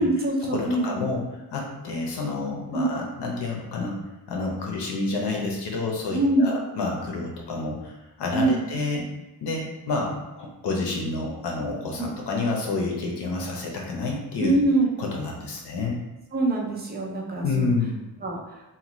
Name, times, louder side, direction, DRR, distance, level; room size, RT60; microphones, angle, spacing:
voice 1, 0.0-0.9 2.7-2.9 6.1-6.6 8.3-8.7 12.0-12.1 14.4-14.9 16.3-17.7 18.2-18.6, right 2 dB, 25° right, -2 dB, 0.4 m, -24 dB
voice 2, 0.5-4.0 4.3-9.1 9.4-14.5 15.0-16.0 17.4-18.1, left 3 dB, 85° left, -1 dB, 0.7 m, -29 dB
2.8 x 2.2 x 3.0 m, 1.0 s
wide cardioid pair, 165°, 40 cm